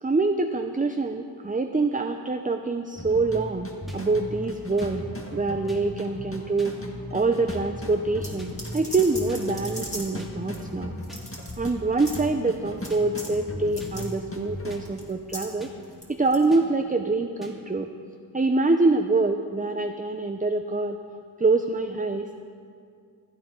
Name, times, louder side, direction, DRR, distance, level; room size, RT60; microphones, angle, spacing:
voice 1, 0.0-5.0 5.3-6.7 7.1-10.9 11.6-15.7 16.1-17.9 18.3-21.0 21.4-22.5, right 3 dB, 20° right, 6 dB, 0.5 m, -25 dB
sound 1, 2.9-14.8, left 1 dB, 30° left, 1.6 m, -37 dB
sound 2, 3.9-4.0 4.8-4.9 5.7-5.8 6.6-6.7 7.5-7.6 8.4-8.5 9.3-9.4 10.2-10.3 11.1-11.2 12.0-12.1 12.9-13.0 13.8-13.9 14.7-14.8 15.6-15.7 16.5-16.6 17.4-17.5, right 1 dB, ahead, 1.9 m, -44 dB
sound 3, 8.2-10.2 10.5-10.6 11.0-11.7 12.0-12.2 12.8-12.9 13.2-13.3 13.7-14.1 14.8-15.5 15.8-16.4, equal, 15° left, 2.8 m, -38 dB
15.5 x 12.5 x 3.8 m, 2.3 s
wide cardioid pair, 45°, 41 cm